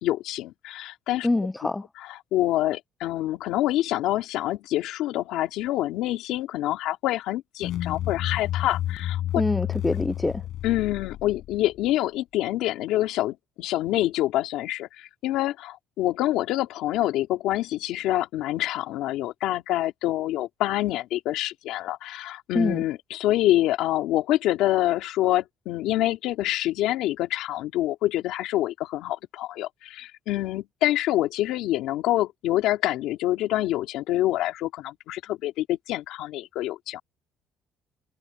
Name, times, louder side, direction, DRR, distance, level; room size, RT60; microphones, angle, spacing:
voice 1, 0.0-1.3 2.0-9.2 10.6-37.0, left 15 dB, 80° left, 2.6 m, -26 dB
voice 2, 1.2-1.8 9.4-10.4 22.6-22.8, left 2 dB, 10° left, 0.3 m, -25 dB
sound 1, 7.6-11.9, left 13 dB, 65° left, 7.4 m, -31 dB
cardioid pair, 130°, 0 cm